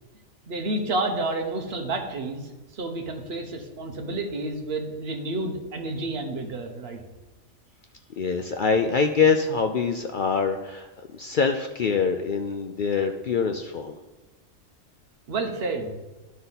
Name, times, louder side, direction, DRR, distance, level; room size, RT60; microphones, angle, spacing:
voice 1, 0.5-7.0 15.3-15.9, right 2 dB, 50° right, 3 dB, 1.1 m, -30 dB
voice 2, 8.2-14.0, left 5 dB, 70° left, 5 dB, 0.5 m, -24 dB
12.0 x 4.1 x 4.0 m, 1.1 s
omnidirectional pair, 1.4 m